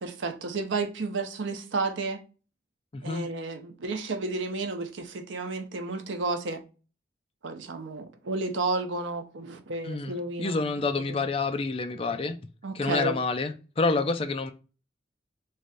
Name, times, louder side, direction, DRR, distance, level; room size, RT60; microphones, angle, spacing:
voice 1, 0.0-2.2 3.0-6.6 7.4-10.6 11.1-11.2 12.6-13.2, right 3 dB, 85° right, 0.6 m, -32 dB
voice 2, 2.9-3.3 9.8-12.4 12.7-14.5, left 3 dB, 30° left, 0.3 m, -28 dB
3.2 x 2.5 x 4.0 m
head